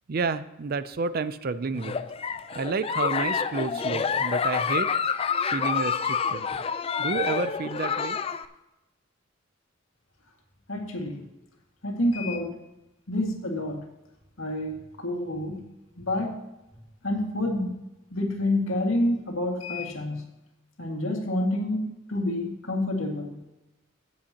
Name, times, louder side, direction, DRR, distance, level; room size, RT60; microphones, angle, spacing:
voice 1, 0.1-1.9 2.5-4.9 5.5-6.5 7.0-8.2, right 4 dB, 50° right, 14 dB, 0.4 m, -30 dB
Giggle, 1.7-8.4, left 6 dB, 30° left, 0.4 m, -28 dB
voice 2, 10.7-11.2 11.8-12.6 13.1-13.8 14.4-15.6 16.0-16.4 17.0-17.8 18.1-20.2 20.8-23.4, left 1 dB, 85° left, 2 dB, 2.0 m, -28 dB
16.5 x 7.7 x 2.9 m, 0.98 s
head